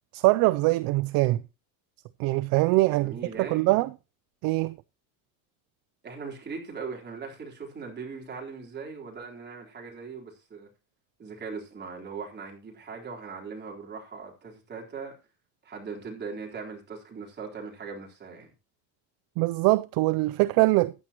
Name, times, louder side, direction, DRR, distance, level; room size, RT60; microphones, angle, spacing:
voice 1, 0.1-1.4 2.2-3.1 3.4-3.9 4.4-4.8 19.4-20.9, right 20 dB, 55° right, 0.5 m, -23 dB
voice 2, 2.9-3.8 6.0-10.7 11.2-15.1 15.6-18.5, right 5 dB, 25° right, 4.0 m, -40 dB
14.5 x 10.0 x 3.0 m
cardioid pair, 145°, 43 cm